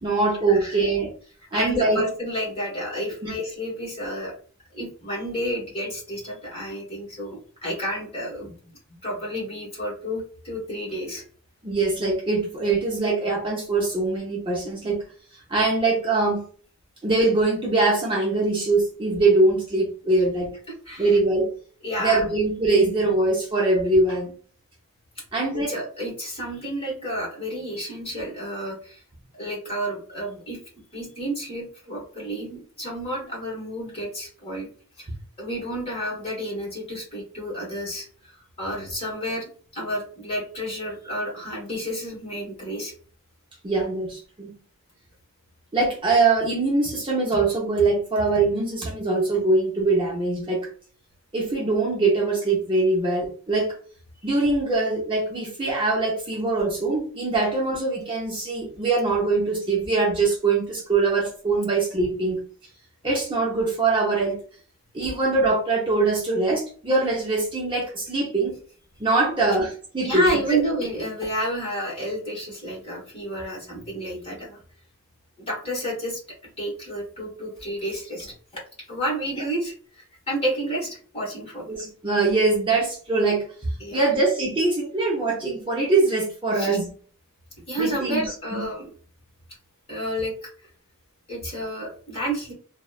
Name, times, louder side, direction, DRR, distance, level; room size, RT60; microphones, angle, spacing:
voice 1, 0.0-1.1 1.5-2.0 3.2-3.3 11.6-15.0 15.5-16.4 17.0-20.5 21.0-21.5 22.0-24.3 25.3-25.8 43.6-44.5 45.7-50.7 51.3-53.8 54.2-62.4 63.0-64.4 64.9-68.5 69.0-70.2 70.5-70.6 81.7-83.4 83.9-86.9 87.8-88.3 88.5-88.6, right 3 dB, 25° right, -3 dB, 0.6 m, -22 dB
voice 2, 1.5-4.3 4.7-8.6 9.0-11.2 20.9-21.1 21.8-22.2 25.5-29.0 29.3-30.6 30.9-34.7 35.0-35.1 35.4-42.9 70.0-74.6 75.4-76.2 76.6-78.3 78.9-79.7 80.3-81.6 83.8-84.0 86.5-86.8 87.7-88.8 89.9-90.5 91.3-92.5, right 1 dB, 30° left, -3 dB, 1.3 m, -30 dB
2.9 x 2.1 x 2.3 m, 0.42 s
head